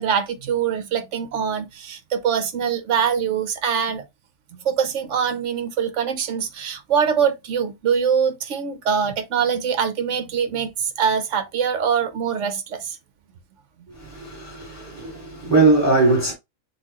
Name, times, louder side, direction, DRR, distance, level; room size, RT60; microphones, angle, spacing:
voice 1, 0.0-4.0 4.5-13.0, right 7 dB, 65° right, 1.1 m, -23 dB
voice 2, 13.9-16.3, right 3 dB, 10° right, 1.5 m, -20 dB
6.8 x 2.4 x 2.9 m
omnidirectional pair, 1.4 m